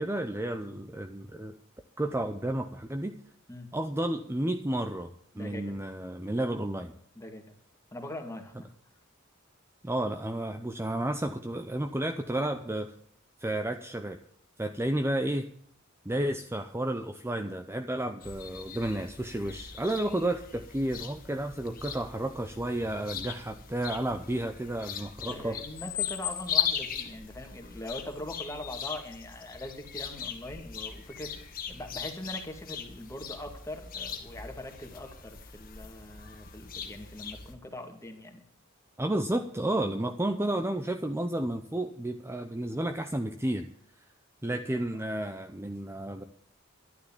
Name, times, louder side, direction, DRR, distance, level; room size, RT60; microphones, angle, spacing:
voice 1, 0.0-1.5 2.0-3.1 3.7-5.1 5.4-6.9 9.8-12.9 13.4-14.2 14.6-15.5 16.0-25.6 39.0-43.7 44.4-46.2, right 1 dB, 10° right, 7 dB, 0.7 m, -31 dB
voice 2, 5.3-5.7 7.2-7.4 7.9-8.7 25.3-38.4 44.5-45.1, left 1 dB, 15° left, 4 dB, 2.2 m, -42 dB
sound 1, 18.2-37.5, left 8 dB, 45° left, 1.7 m, -38 dB
11.5 x 10.0 x 7.2 m, 0.62 s
head